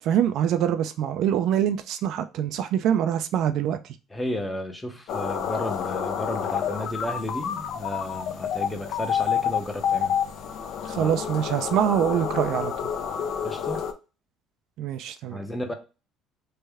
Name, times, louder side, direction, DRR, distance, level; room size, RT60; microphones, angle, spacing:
voice 1, 0.0-4.0 10.8-12.9 14.8-15.4, right 10 dB, 65° right, 0.3 m, -25 dB
voice 2, 4.1-10.2 11.0-11.1 13.4-13.8 15.3-15.7, left 1 dB, 10° left, 0.6 m, -33 dB
sound 1, 5.1-13.9, left 8 dB, 65° left, 0.4 m, -29 dB
3.3 x 2.2 x 3.4 m
cardioid pair, 100°, 0 cm